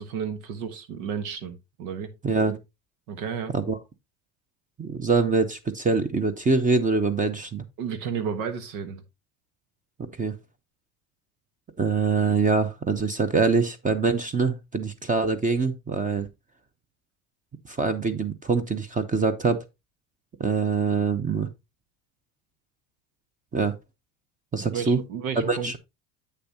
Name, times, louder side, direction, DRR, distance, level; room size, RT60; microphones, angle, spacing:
voice 1, 0.0-2.1 3.1-3.5 7.8-9.0 24.6-25.8, right 7 dB, 85° right, 1.4 m, -32 dB
voice 2, 2.2-2.6 3.5-3.8 4.8-7.6 10.2-10.3 11.8-16.3 17.7-19.6 20.4-21.5 23.5-23.8 24.5-25.0 25.5-25.8, right 4 dB, 20° right, 0.7 m, -24 dB
8.2 x 6.7 x 2.8 m
supercardioid pair, 110°, 42 cm